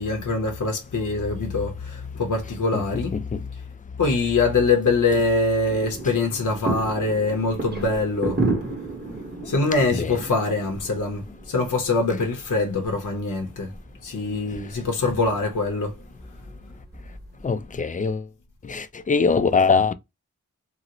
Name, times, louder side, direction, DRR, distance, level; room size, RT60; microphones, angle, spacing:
voice 1, 0.0-3.1 4.0-8.4 9.4-13.7 14.0-16.0, left 3 dB, 60° left, 0.8 m, -24 dB
voice 2, 3.1-3.4 9.9-10.2 17.4-18.2 18.6-19.9, left 5 dB, 25° left, 0.3 m, -22 dB
sound 1, 5.7-17.8, right 3 dB, 30° right, 1.1 m, -33 dB
3.8 x 2.0 x 2.8 m
wide cardioid pair, 85°, 34 cm